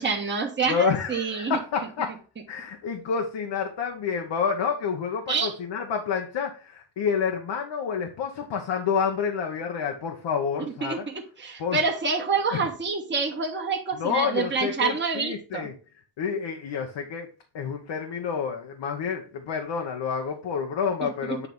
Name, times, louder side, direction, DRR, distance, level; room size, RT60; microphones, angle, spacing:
voice 1, 0.0-1.6 5.3-5.5 10.8-15.7 21.0-21.5, right 5 dB, 25° right, 1 dB, 1.3 m, -27 dB
voice 2, 0.7-2.2 2.5-11.1 11.6-11.9 12.5-12.7 13.9-15.7 16.2-17.3 17.5-21.5, left 6 dB, 70° left, 3 dB, 1.1 m, -29 dB
8.4 x 3.0 x 5.3 m, 0.37 s
cardioid pair, 75°, 44 cm